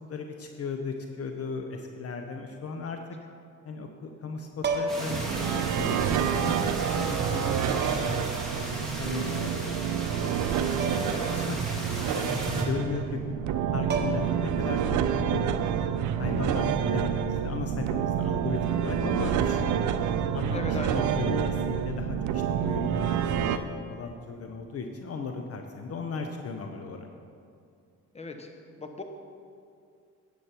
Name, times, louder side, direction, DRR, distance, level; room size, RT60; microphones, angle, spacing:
voice 1, 0.1-3.0 3.6-9.8 10.9-11.6 12.1-13.2 13.7-15.5 16.1-19.8 20.3-27.1, left 4 dB, 50° left, 4 dB, 0.8 m, -36 dB
sound 1, 4.6-5.2 6.5-6.6 7.8-8.3 10.8-11.2 11.5-11.6 13.5-13.6 13.9-14.5 16.4-16.7, right 3 dB, 35° right, 1.3 m, -31 dB
sound 2, 4.9-12.6, right 1 dB, ahead, 2.8 m, -36 dB
sound 3, 5.1-23.6, right 8 dB, 75° right, 0.6 m, -28 dB
voice 2, 11.1-11.4 20.5-21.3 28.1-28.5 28.8-29.0, left 3 dB, 20° left, 4 dB, 1.1 m, -38 dB
10.0 x 8.3 x 4.5 m, 2.4 s
cardioid pair, 90°, 30 cm